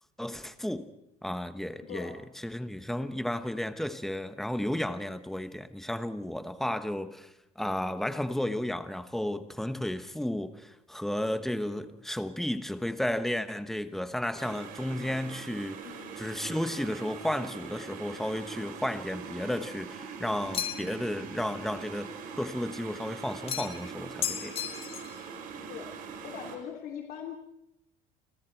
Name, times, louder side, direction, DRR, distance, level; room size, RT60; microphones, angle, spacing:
voice 1, 0.2-0.9 1.2-2.1 2.4-15.9 16.2-22.1 22.4-24.5, left 1 dB, ahead, 1.1 m, -33 dB
voice 2, 1.8-2.2 15.8-16.7 25.7-25.9 26.2-27.3, left 8 dB, 55° left, 2.9 m, -42 dB
sound 1, 14.4-26.6, right 6 dB, 55° right, 4.6 m, -42 dB
sound 2, 20.5-21.0 23.5-23.9 24.2-25.2, left 9 dB, 35° left, 1.5 m, -34 dB
30.0 x 26.0 x 4.6 m
cardioid pair, 165°, 17 cm